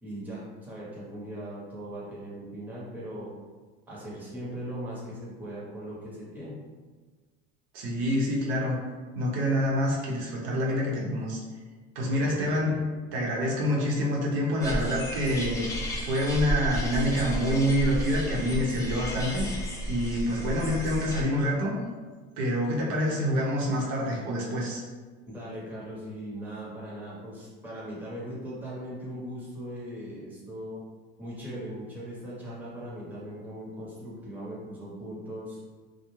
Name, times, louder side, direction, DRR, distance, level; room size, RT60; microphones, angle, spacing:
voice 1, 0.0-3.3 3.9-6.6 12.2-12.8 25.3-30.8 31.2-35.6, equal, 5° right, -7 dB, 0.8 m, -39 dB
voice 2, 7.7-8.8 9.1-11.4 11.9-12.7 13.1-15.6 16.0-19.5 19.9-21.7 22.4-24.8, equal, 75° right, -3 dB, 0.8 m, -27 dB
sound 1, 14.6-21.2, equal, 10° left, 0.4 m, -32 dB
2.3 x 2.1 x 3.0 m, 1.4 s
supercardioid pair, 110°, 33 cm